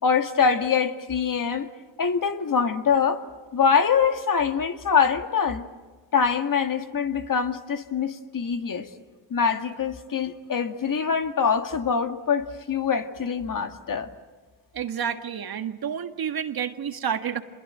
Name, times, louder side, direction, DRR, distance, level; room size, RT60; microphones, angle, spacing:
voice 1, 0.0-1.7 2.0-3.2 3.5-5.7 6.1-8.9 9.3-14.1, left 6 dB, 40° left, 7 dB, 2.1 m, -24 dB
voice 2, 14.7-17.4, right 8 dB, 50° right, 8 dB, 1.8 m, -29 dB
26.5 x 22.0 x 9.0 m, 1.4 s
supercardioid pair, 80°, 47 cm